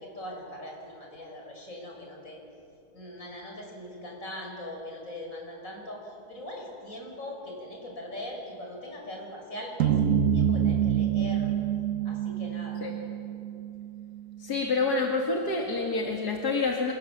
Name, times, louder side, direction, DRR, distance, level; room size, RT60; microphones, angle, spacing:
voice 1, 0.0-2.4 2.9-10.0 10.3-11.5 12.0-12.9, left 1 dB, 55° left, 0 dB, 6.6 m, -41 dB
sound 1, 9.8-14.2, right 9 dB, 60° right, 1.2 m, -26 dB
voice 2, 14.4-16.9, left 3 dB, 90° left, -1 dB, 2.8 m, -27 dB
28.0 x 26.5 x 7.5 m, 2.6 s
omnidirectional pair, 1.7 m